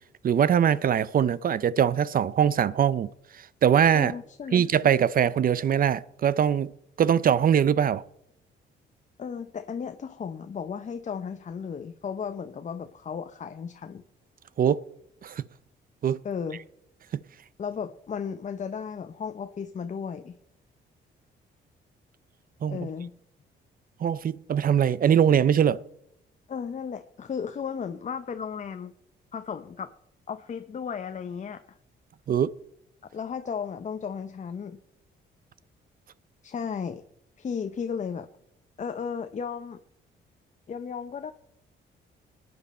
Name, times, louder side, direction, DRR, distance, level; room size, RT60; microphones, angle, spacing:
voice 1, 0.2-3.1 3.6-4.1 4.5-6.7 7.0-8.0 14.6-14.8 15.2-15.4 16.0-16.2 22.6-22.8 24.0-25.8 32.3-32.5, right 8 dB, 45° right, 0.5 m, -22 dB
voice 2, 3.9-4.7 9.2-14.0 16.2-16.6 17.6-20.4 22.7-23.1 26.5-28.9 29.3-29.9 30.3-31.8 33.0-34.8 36.4-37.0 37.4-38.3 38.8-39.8 40.7-41.3, left 6 dB, 40° left, 0.7 m, -34 dB
19.5 x 9.6 x 4.3 m
cardioid pair, 90°, 20 cm